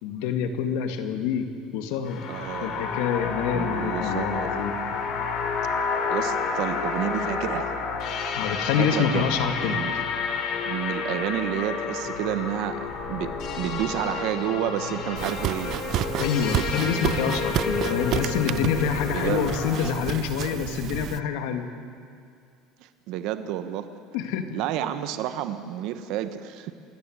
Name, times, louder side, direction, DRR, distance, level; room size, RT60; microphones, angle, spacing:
voice 1, 0.0-1.4 1.7-2.2 2.6-4.8 8.3-9.8 16.2-21.7 24.1-24.5, left 7 dB, 80° left, 6 dB, 2.2 m, -27 dB
sound 1, 2.1-19.8, left 5 dB, 55° left, 3.2 m, -30 dB
voice 2, 2.3-2.9 3.5-4.5 6.1-7.7 8.8-9.3 9.6-9.9 10.6-15.8 19.1-19.5 22.8-23.9 24.5-26.7, right 11 dB, 65° right, 10 dB, 1.1 m, -30 dB
sound 2, 12.8-16.0, left 4 dB, 25° left, 5.7 m, -46 dB
sound 3, 15.2-21.2, right 12 dB, 50° right, 0.6 m, -30 dB
27.5 x 14.0 x 9.5 m, 2.3 s
cardioid pair, 140°, 0 cm